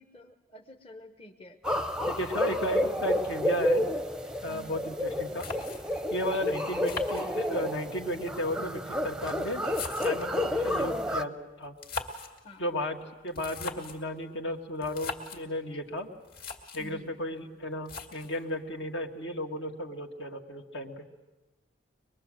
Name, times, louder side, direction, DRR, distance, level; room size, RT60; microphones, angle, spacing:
voice 1, 0.0-1.6 4.5-4.8 12.4-12.6 16.8-17.1, equal, 30° left, 3 dB, 1.0 m, -49 dB
sound 1, 1.6-11.2, left 1 dB, 5° right, 0.7 m, -30 dB
voice 2, 2.1-3.9 4.4-5.5 6.1-9.6 10.0-11.7 12.6-16.1 16.7-21.0, left 1 dB, 65° left, 3 dB, 2.0 m, -34 dB
sound 2, 5.0-5.1 5.4-6.1 6.8-7.8 8.7-10.4 11.6-12.4 13.3-14.1 14.8-15.4 16.0-16.1 16.2-16.9 17.8-18.4, left 4 dB, 50° left, 2.5 m, -40 dB
23.5 x 22.0 x 7.7 m, 1.1 s
head